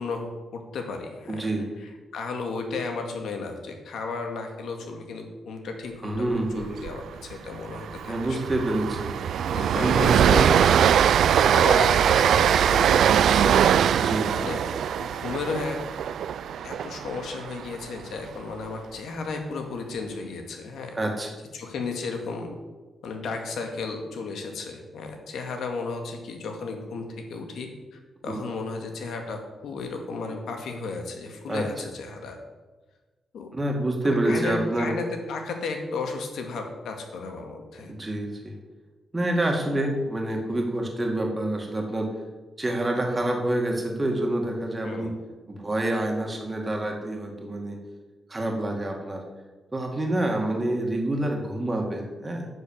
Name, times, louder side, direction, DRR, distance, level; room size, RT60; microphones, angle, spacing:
voice 1, 0.0-1.5 2.1-8.4 9.5-10.6 11.4-13.6 14.0-14.6 15.0-15.8 16.6-20.9 21.5-22.5 23.0-32.4 33.3-33.6 34.0-37.9 44.8-45.1, left 4 dB, 85° left, 4 dB, 2.0 m, -34 dB
voice 2, 1.3-1.7 6.0-6.7 8.1-10.5 14.0-14.5 20.9-21.3 28.3-28.4 31.5-31.7 33.5-34.9 37.9-38.6 39.1-42.1 42.6-45.1 45.5-47.8 48.3-49.2 49.7-52.5, right 1 dB, 20° right, 1 dB, 2.1 m, -27 dB
Train, 6.6-6.9 7.2-7.3 7.7-17.8, right 9 dB, 75° right, 0.3 m, -21 dB
10.5 x 6.7 x 7.2 m, 1.3 s
wide cardioid pair, 135°, 0 cm